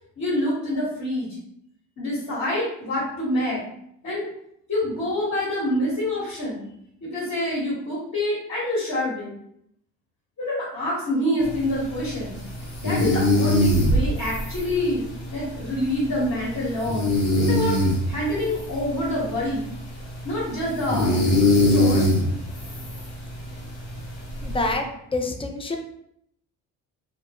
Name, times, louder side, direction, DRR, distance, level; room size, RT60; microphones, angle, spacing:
voice 1, 0.2-1.3 2.0-3.6 4.0-4.3 4.7-6.6 7.0-9.3 10.4-12.3 12.8-15.0 15.3-17.1 17.4-17.8 18.1-19.6 20.2-21.1 21.7-22.1, left 1 dB, 45° left, -7 dB, 1.2 m, -26 dB
sound 1, 11.4-24.8, left 1 dB, 90° left, 0.9 m, -24 dB
voice 2, 24.4-25.8, left 2 dB, 15° left, 4 dB, 0.3 m, -27 dB
2.2 x 2.0 x 2.9 m, 0.73 s
supercardioid pair, 65°, 40 cm